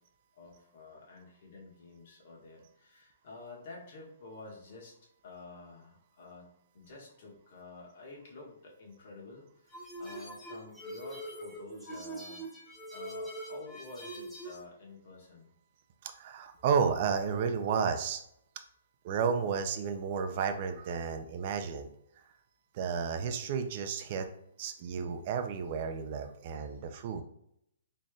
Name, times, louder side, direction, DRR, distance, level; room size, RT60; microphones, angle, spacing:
voice 1, 0.3-4.9 5.2-12.4 12.9-15.5 26.6-26.8, left 3 dB, 50° left, -2 dB, 1.5 m, -50 dB
sound 1, 9.7-14.6, right 1 dB, ahead, 0.7 m, -43 dB
voice 2, 16.0-18.2 19.0-21.9 22.7-24.3 24.6-27.2, right 6 dB, 40° right, 7 dB, 0.5 m, -32 dB
4.1 x 3.2 x 2.4 m, 0.73 s
hypercardioid pair, 160°, 0 cm